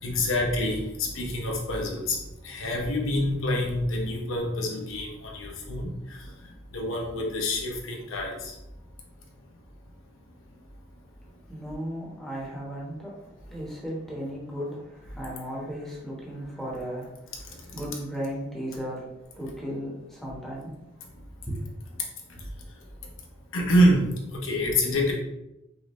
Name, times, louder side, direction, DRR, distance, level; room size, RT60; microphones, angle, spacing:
voice 1, 0.0-2.2 2.4-5.9 6.7-8.5 23.5-25.1, equal, 85° left, 0 dB, 1.0 m, -26 dB
voice 2, 11.5-13.2 13.5-17.3 17.7-20.8 21.5-21.6, equal, ahead, -5 dB, 1.1 m, -35 dB
5.3 x 2.6 x 3.1 m, 0.92 s
head